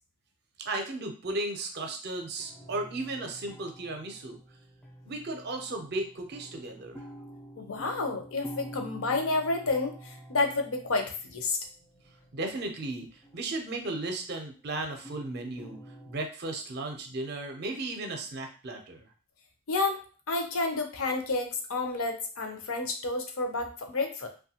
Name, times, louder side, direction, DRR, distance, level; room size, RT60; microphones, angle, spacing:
voice 1, 0.6-4.4 5.1-7.0 12.3-15.8 16.1-19.1, right 2 dB, 50° right, 4 dB, 0.5 m, -35 dB
sound 1, 2.2-14.0 15.0-16.2, right 1 dB, 5° left, 0.4 m, -48 dB
voice 2, 7.6-11.6 19.7-20.0 20.3-24.3, left 3 dB, 65° left, 5 dB, 0.5 m, -30 dB
3.0 x 2.2 x 2.8 m, 0.37 s
head